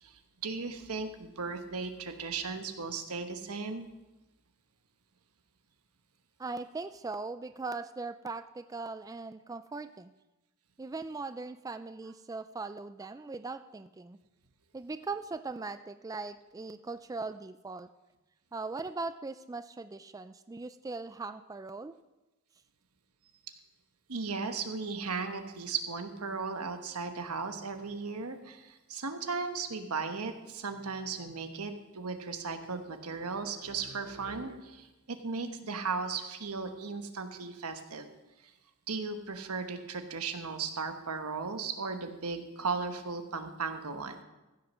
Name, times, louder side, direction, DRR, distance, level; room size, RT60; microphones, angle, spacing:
voice 1, 0.0-3.9 24.1-38.1 38.9-44.2, right 4 dB, 90° right, 7 dB, 1.2 m, -36 dB
voice 2, 6.4-10.1 10.8-14.2 14.7-17.9 18.5-21.9, right 3 dB, 15° right, 11 dB, 0.3 m, -40 dB
15.0 x 6.5 x 6.1 m, 1.1 s
head